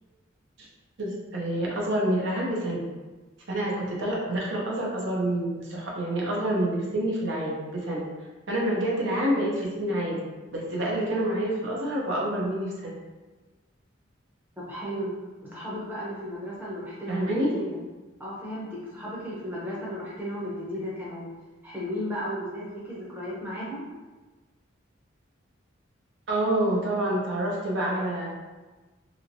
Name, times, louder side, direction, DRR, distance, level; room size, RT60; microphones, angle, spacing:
voice 1, 1.0-2.8 3.5-8.0 8.5-10.2 10.5-12.9 17.1-17.5 26.3-28.3, right 1 dB, 65° right, -3 dB, 0.7 m, -27 dB
voice 2, 14.6-15.1 15.4-17.8 18.2-21.3 21.6-23.9, equal, 10° right, -7 dB, 0.7 m, -34 dB
3.0 x 2.9 x 2.6 m, 1.2 s
head